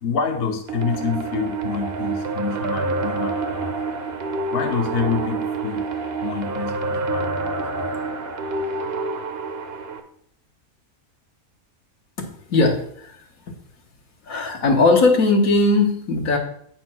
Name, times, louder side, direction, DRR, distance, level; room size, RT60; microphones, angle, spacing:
voice 1, 0.0-3.8 4.5-5.9 6.2-7.9, left 5 dB, 50° left, 5 dB, 0.9 m, -27 dB
sound 1, 0.7-10.0, right 3 dB, 50° right, 0.9 m, -27 dB
voice 2, 12.2-13.1 14.3-16.4, left 3 dB, 70° left, 2 dB, 1.6 m, -19 dB
8.5 x 4.4 x 5.9 m, 0.66 s
omnidirectional pair, 1.5 m